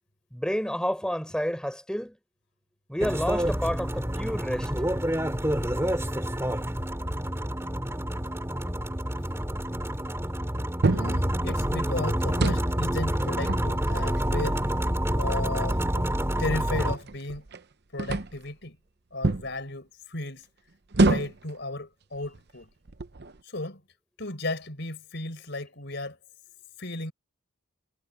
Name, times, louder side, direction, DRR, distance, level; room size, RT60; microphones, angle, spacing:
voice 1, 0.3-2.2 2.9-4.7, equal, 5° left, 5.2 m, -29 dB
sound 1, 3.0-16.9, equal, 10° right, 3.4 m, -28 dB
sound 2, 10.8-11.2 12.2-12.7 13.2-14.3 15.0-15.1 15.6-17.6 18.0-18.5 19.2-19.5 20.9-21.5 22.2-22.4 22.9-23.4, right 2 dB, 50° right, 0.8 m, -27 dB
voice 2, 10.9-14.7 15.2-15.8 16.4-17.5 17.9-18.8 19.1-20.4 21.0-22.7 23.4-23.8 24.2-26.2 26.8-27.1, left 2 dB, 55° left, 5.0 m, -34 dB
head